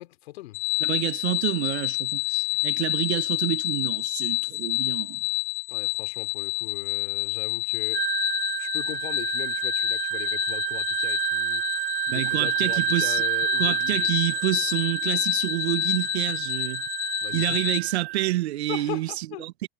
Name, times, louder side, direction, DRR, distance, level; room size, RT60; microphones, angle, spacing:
voice 1, 0.0-0.6 5.7-11.7 12.1-14.6 17.2-17.7 18.7-19.5, left 18 dB, 75° left, 2.8 m, -40 dB
sound 1, 0.5-17.8, left 25 dB, 40° left, 0.4 m, -29 dB
voice 2, 0.8-5.2 12.1-13.2 13.6-16.8 17.3-19.7, right 16 dB, 85° right, 0.8 m, -28 dB
Wind instrument woodwind instrument, 7.9-18.3, right 16 dB, 35° right, 2.4 m, -29 dB
hypercardioid pair, 100°, 32 cm